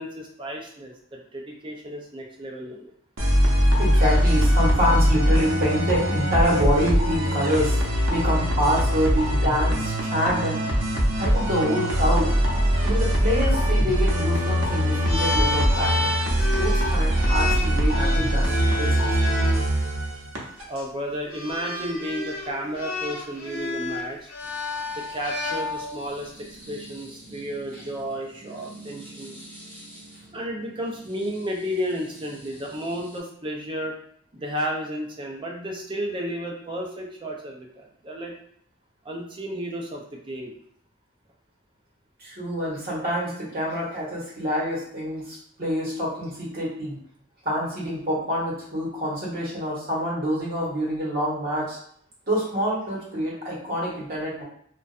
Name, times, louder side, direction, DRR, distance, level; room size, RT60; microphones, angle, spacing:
voice 1, 0.0-2.9 20.7-24.3 25.0-29.4 30.3-33.9 34.3-38.3 39.0-40.5, equal, 25° right, 0 dB, 0.4 m, -32 dB
sound 1, 3.2-20.6, equal, 85° right, 0.6 m, -22 dB
voice 2, 3.8-7.8 8.1-10.6 11.1-12.3 12.8-16.1 16.6-19.2 19.4-19.5 27.7-27.8 42.2-47.0 47.4-51.8 52.3-54.4, equal, 45° right, -6 dB, 1.0 m, -26 dB
sound 2, 15.1-19.6 20.6-20.8 21.3-26.1, left 2 dB, 50° left, 0.7 m, -30 dB
sound 3, 24.4-33.2, right 1 dB, 25° left, 1.4 m, -47 dB
2.5 x 2.2 x 2.4 m, 0.65 s
head